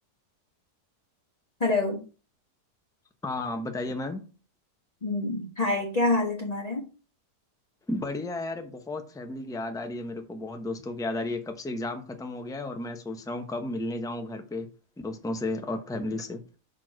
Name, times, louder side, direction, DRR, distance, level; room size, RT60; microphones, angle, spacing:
voice 1, 1.6-2.0 5.0-6.9, left 2 dB, 25° left, -2 dB, 1.3 m, -26 dB
voice 2, 3.2-4.2 7.9-14.7 15.0-16.4, left 2 dB, 5° left, 6 dB, 0.6 m, -33 dB
6.1 x 4.5 x 6.2 m, 0.35 s
omnidirectional pair, 1.7 m